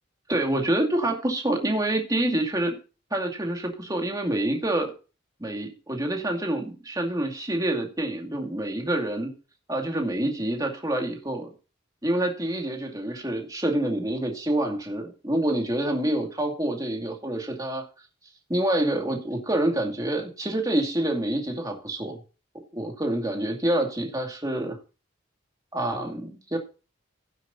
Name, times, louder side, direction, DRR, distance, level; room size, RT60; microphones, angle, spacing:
voice 1, 0.3-2.7 3.1-4.9 5.4-9.3 9.7-11.5 12.0-17.9 18.5-22.2 22.7-24.8 25.7-26.6, right 1 dB, 20° right, 2 dB, 2.4 m, -27 dB
16.5 x 8.1 x 2.7 m, 0.32 s
head